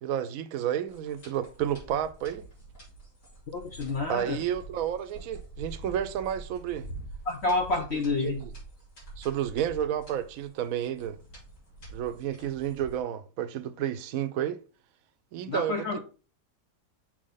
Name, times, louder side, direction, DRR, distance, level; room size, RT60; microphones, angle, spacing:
voice 1, 0.0-2.4 4.1-6.9 7.9-8.5 9.2-11.2 11.9-14.6 15.3-16.0, right 10 dB, 65° right, 1.0 m, -31 dB
sound 1, 0.9-13.0, right 2 dB, 80° left, 3.8 m, -46 dB
voice 2, 3.5-4.4 7.3-8.4 15.5-16.0, left 3 dB, 55° left, 0.7 m, -28 dB
6.3 x 4.1 x 4.0 m
omnidirectional pair, 1.8 m